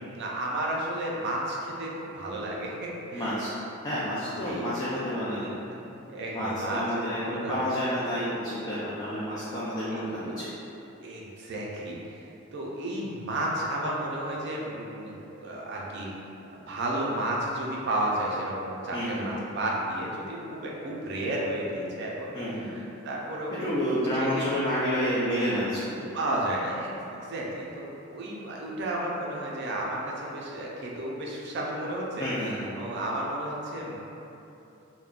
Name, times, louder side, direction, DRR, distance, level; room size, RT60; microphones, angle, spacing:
voice 1, 0.0-3.4 4.2-4.7 5.7-7.7 9.9-10.0 11.0-12.3 12.5-16.1 16.5-22.3 22.6-23.6 24.2-24.5 26.1-32.3 32.8-34.0, right 1 dB, 55° right, -3 dB, 0.5 m, -32 dB
voice 2, 3.1-3.5 3.8-5.5 6.3-10.5 18.9-19.4 22.3-22.7 23.5-26.0 32.2-32.8, equal, 20° left, -10 dB, 0.4 m, -29 dB
3.6 x 2.1 x 2.4 m, 2.9 s
head